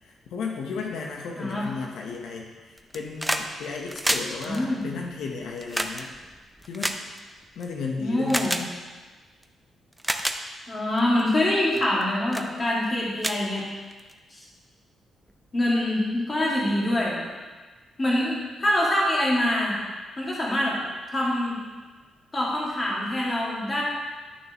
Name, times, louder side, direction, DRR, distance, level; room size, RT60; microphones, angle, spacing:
voice 1, 0.0-6.1 6.7-7.0 7.6-8.5, left 5 dB, 85° left, 0 dB, 1.0 m, -34 dB
voice 2, 1.4-1.7 4.4-4.9 8.0-8.6 10.7-13.7 14.3-14.4 15.5-17.2 18.0-19.7 20.2-20.8 21.1-21.6 22.3-23.8, left 1 dB, 20° left, -5 dB, 2.1 m, -25 dB
sound 1, 2.8-3.5 3.8-7.6 8.3-8.6 9.4-9.5 9.9-10.4 11.0-11.2 11.8-12.0 12.3-12.5 12.9-13.0 13.2-14.1 15.3-15.4, right 1 dB, 5° right, 0.4 m, -29 dB
11.0 x 6.5 x 3.0 m, 1.3 s
cardioid pair, 160°, 0 cm